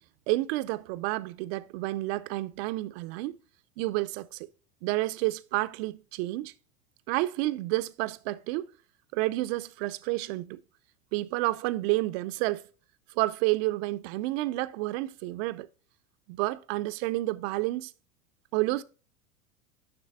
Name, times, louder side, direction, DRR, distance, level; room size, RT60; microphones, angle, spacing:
voice 1, 0.3-3.4 3.8-4.5 4.8-6.5 7.1-8.7 9.1-10.6 11.1-12.6 13.2-15.7 16.3-17.9 18.5-18.8, right 19 dB, 50° right, 0.7 m, -30 dB
10.5 x 6.3 x 2.3 m
figure-of-eight pair, 85°, 40 cm